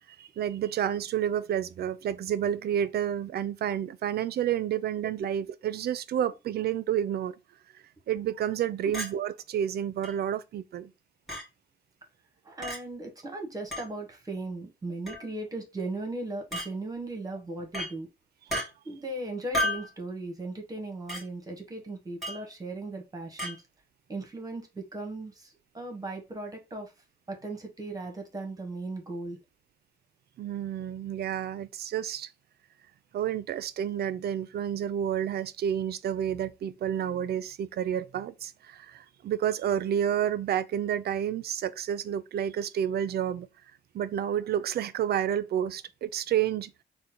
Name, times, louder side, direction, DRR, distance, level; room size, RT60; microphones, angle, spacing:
voice 1, 0.2-7.4 8.1-10.9 30.4-32.3 33.1-43.5 43.9-46.7, right 10 dB, 60° right, 0.4 m, -30 dB
Chink clink, 8.9-9.1 10.0-10.1 11.3-11.4 12.6-12.8 13.7-13.9 15.1-15.3 16.5-16.7 17.7-17.9 18.5-18.7 19.5-19.9 21.1-21.2 22.2-22.4 23.4-23.6, left 1 dB, ahead, 1.8 m, -32 dB
voice 2, 12.4-18.1 18.8-23.6 24.1-26.9 27.3-29.4, right 2 dB, 20° right, 1.0 m, -37 dB
3.7 x 2.1 x 4.2 m
wide cardioid pair, 145°, 18 cm